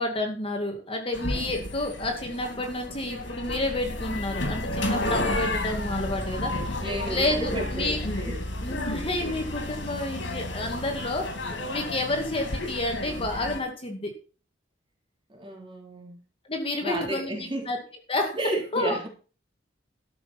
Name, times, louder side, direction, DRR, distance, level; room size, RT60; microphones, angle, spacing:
voice 1, 0.0-6.8 7.1-8.0 8.6-14.1 16.4-17.8 18.1-18.4 18.7-19.1, left 2 dB, 30° left, 3 dB, 2.2 m, -30 dB
sound 1, 1.1-13.6, left 1 dB, 85° left, 2.9 m, -32 dB
voice 2, 6.8-8.4 9.3-9.4 9.8-9.9 15.3-16.2 16.8-17.7 18.4-19.1, right 1 dB, 30° right, 0 dB, 3.6 m, -33 dB
13.0 x 6.6 x 5.9 m, 0.38 s
head